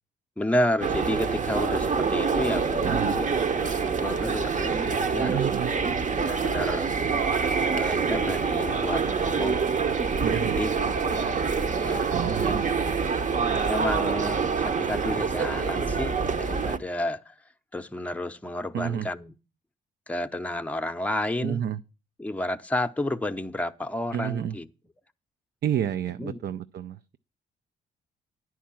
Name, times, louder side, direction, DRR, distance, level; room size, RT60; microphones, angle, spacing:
voice 1, 0.4-5.5 6.1-6.9 7.7-9.7 10.3-11.4 11.8-12.7 13.7-17.3 17.7-19.3 20.1-21.6 22.2-24.7 26.2-26.4, left 1 dB, 5° left, 0.7 m, -31 dB
sound 1, 0.8-16.8, right 5 dB, 35° right, 0.8 m, -26 dB
voice 2, 2.8-3.2 5.2-5.7 10.2-10.6 12.1-12.6 18.7-19.1 21.4-21.8 24.1-24.6 25.6-27.2, right 10 dB, 55° right, 0.5 m, -30 dB
10.0 x 4.7 x 7.4 m
hypercardioid pair, 50°, 21 cm